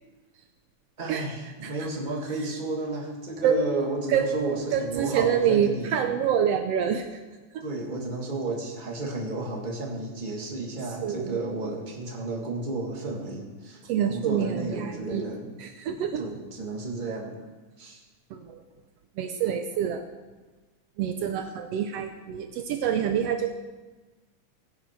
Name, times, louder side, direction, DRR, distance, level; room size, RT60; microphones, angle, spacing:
voice 1, 1.0-6.0 7.6-13.8 14.1-15.5 15.9-17.4 17.8-18.0, right 2 dB, 20° right, -1 dB, 1.6 m, -32 dB
voice 2, 3.4-3.8 4.1-7.2 7.5-7.6 11.0-11.4 13.8-15.3 15.6-16.2 18.3-18.6 19.2-20.0 21.0-23.5, right 8 dB, 90° right, 6 dB, 1.4 m, -27 dB
18.0 x 11.0 x 4.6 m, 1.2 s
omnidirectional pair, 3.7 m